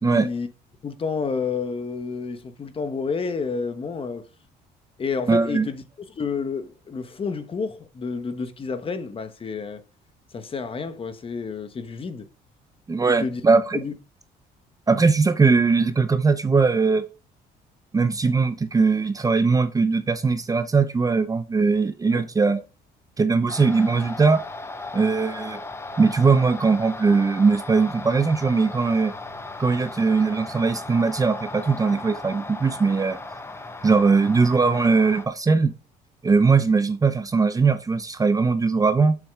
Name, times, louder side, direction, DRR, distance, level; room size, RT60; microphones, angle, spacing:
voice 1, 0.0-0.5 0.8-4.3 5.0-5.8 6.2-9.8 10.3-12.2 13.1-13.4 13.7-13.9 22.1-22.3, left 5 dB, 30° left, 1.2 m, -30 dB
voice 2, 5.3-5.7 12.9-13.8 14.9-17.1 17.9-22.6 23.2-24.4 24.9-25.6 26.0-29.1 29.6-33.2 33.8-35.7 36.2-39.2, right 4 dB, 20° right, 0.8 m, -20 dB
sound 1, 23.5-35.3, left 2 dB, 15° left, 1.1 m, -37 dB
8.8 x 7.3 x 3.7 m
cardioid pair, 110°, 17 cm